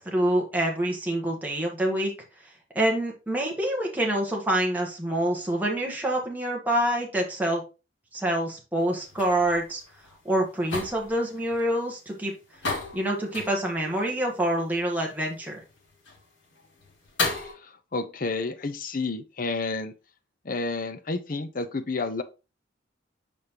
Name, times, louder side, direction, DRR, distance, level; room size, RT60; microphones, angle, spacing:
voice 1, 0.0-2.1 2.4-7.6 8.1-9.8 10.2-12.3 12.9-15.6, right 1 dB, 10° right, 1.2 m, -26 dB
sound 1, 8.8-17.5, left 3 dB, 70° left, 2.3 m, -36 dB
voice 2, 17.4-19.9 20.4-22.2, left 3 dB, 45° left, 0.6 m, -30 dB
6.6 x 5.2 x 2.9 m
head